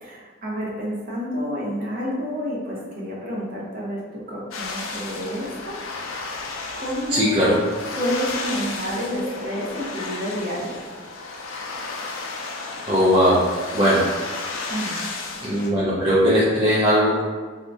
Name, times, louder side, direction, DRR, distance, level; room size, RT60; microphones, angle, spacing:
voice 1, 0.0-6.3 6.8-7.5 8.0-10.8 14.7-15.0, equal, 45° right, -5 dB, 0.8 m, -29 dB
sound 1, 4.5-15.7, left 3 dB, 90° left, 0.4 m, -33 dB
voice 2, 7.1-7.6 9.1-9.3 12.9-13.4 13.7-14.1 14.8-15.1 15.4-17.2, equal, 25° right, -8 dB, 0.4 m, -19 dB
2.7 x 2.5 x 3.4 m, 1.4 s
head